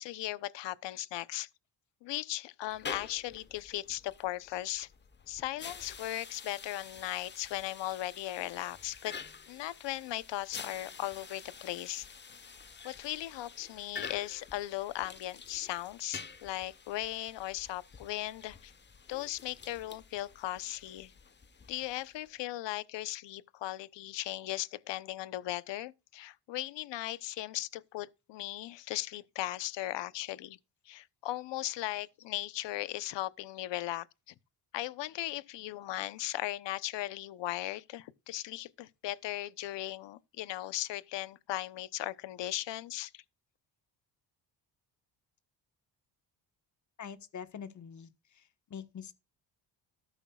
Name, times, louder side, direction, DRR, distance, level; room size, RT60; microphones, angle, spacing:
voice 1, 0.0-1.5 2.0-4.9 5.3-9.1 9.5-12.1 12.8-18.7 19.1-21.1 21.7-30.6 30.9-34.3 34.7-43.2, left 15 dB, 75° left, 0.9 m, -37 dB
sound 1, 2.7-22.3, left 5 dB, 25° left, 1.0 m, -48 dB
voice 2, 47.0-48.1 48.7-49.1, left 7 dB, 40° left, 1.4 m, -44 dB
13.5 x 12.0 x 2.4 m
cardioid pair, 130°, 43 cm